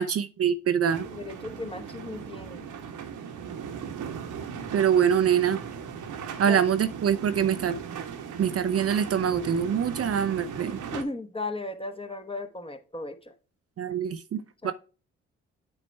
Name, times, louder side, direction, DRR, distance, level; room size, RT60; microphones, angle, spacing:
voice 1, 0.0-1.1 4.7-5.6 6.4-7.8 8.4-10.8 13.8-14.7, right 8 dB, 45° right, 0.6 m, -24 dB
sound 1, 0.9-11.0, right 7 dB, 60° right, 1.1 m, -38 dB
voice 2, 1.2-2.7 6.4-6.6 10.9-13.3 14.6-14.7, left 2 dB, 15° left, 1.1 m, -36 dB
8.6 x 3.0 x 4.5 m
hypercardioid pair, 45°, 34 cm